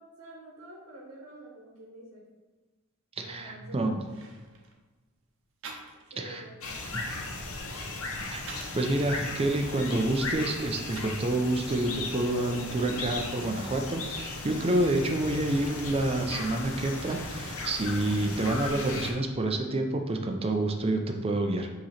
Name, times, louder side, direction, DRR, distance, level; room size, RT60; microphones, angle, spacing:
voice 1, 0.0-2.3 3.2-3.8 6.1-6.8 7.1-7.9, right 1 dB, 80° right, -3 dB, 1.2 m, -49 dB
voice 2, 3.2-4.0 6.2-6.4 6.9-7.1 8.3-8.4 8.7-21.7, right 1 dB, 25° right, 3 dB, 0.5 m, -28 dB
sound 1, 3.6-3.7 4.0-4.8 5.6-6.2 6.6-8.9 9.4-11.2 11.8-14.0 14.3-15.1, right 4 dB, 60° right, 0.8 m, -49 dB
sound 2, 6.6-19.1, left 3 dB, 70° left, 0.9 m, -37 dB
7.5 x 3.1 x 4.1 m, 1.2 s
head